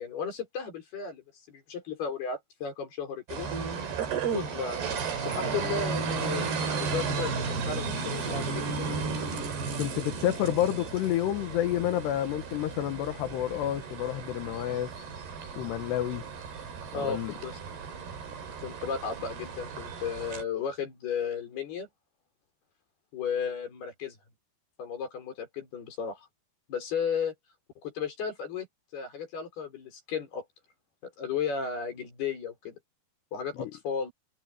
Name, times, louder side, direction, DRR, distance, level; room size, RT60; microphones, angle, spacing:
voice 1, 0.0-3.5 4.3-6.5 6.8-9.0 16.9-17.6 18.6-21.9 23.1-24.2 24.8-26.3 26.7-27.3 27.8-28.7 28.9-30.4 31.2-32.8 33.3-34.1, left 6 dB, 70° left, 7.5 m, -34 dB
sound 1, 3.3-20.4, right 5 dB, 75° right, 6.0 m, -34 dB
voice 2, 9.8-14.9 15.6-16.2 17.0-17.3 33.6-33.7, left 12 dB, 85° left, 3.5 m, -29 dB
omnidirectional pair, 4.7 m